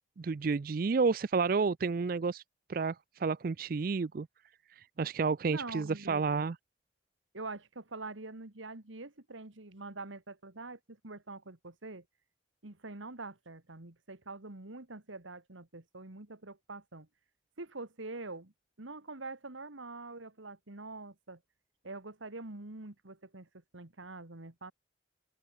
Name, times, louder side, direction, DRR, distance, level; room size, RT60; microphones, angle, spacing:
voice 1, 0.2-2.4 2.7-4.3 4.8-6.6, right 4 dB, 45° right, 0.4 m, -30 dB
voice 2, 5.5-6.4 7.3-12.0 12.6-17.1 17.6-18.5 18.8-21.4 21.8-23.5 23.7-24.7, right 3 dB, 85° right, 2.1 m, -45 dB
open air
head